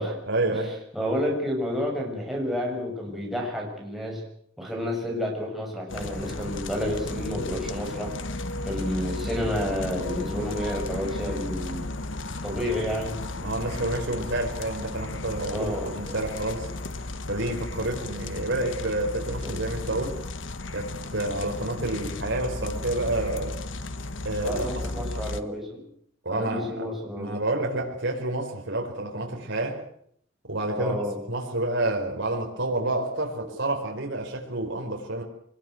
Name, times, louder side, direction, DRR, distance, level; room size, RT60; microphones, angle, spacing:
voice 1, 0.3-0.8 13.4-16.7 17.3-20.2 20.7-23.6 24.2-24.7 25.1-25.3 26.2-26.9 27.2-29.8 30.5-31.0 31.3-35.2, right 2 dB, 65° right, 4.9 m, -29 dB
voice 2, 0.9-4.2 4.6-8.1 8.6-11.9 12.4-13.2 15.5-16.0 19.4-19.5 24.4-25.8 26.3-27.3 30.7-31.2 33.3-33.5, equal, ahead, 6.6 m, -30 dB
sound 1, 5.9-25.4, left 2 dB, 70° left, 1.4 m, -34 dB
24.0 x 21.0 x 7.9 m
head